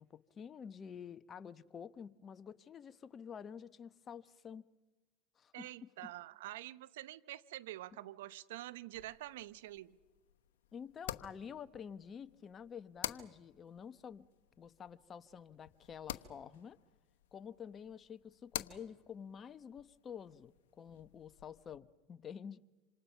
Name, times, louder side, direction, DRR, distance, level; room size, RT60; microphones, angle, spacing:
voice 1, 0.0-4.6 5.4-5.9 10.7-14.2 14.6-16.8 17.3-22.6, left 7 dB, 35° left, 1.1 m, -49 dB
voice 2, 5.5-10.0, right 15 dB, 80° right, 0.8 m, -47 dB
sound 1, 8.9-21.8, left 12 dB, 80° left, 1.1 m, -50 dB
27.0 x 27.0 x 5.8 m
hypercardioid pair, 90°, 0 cm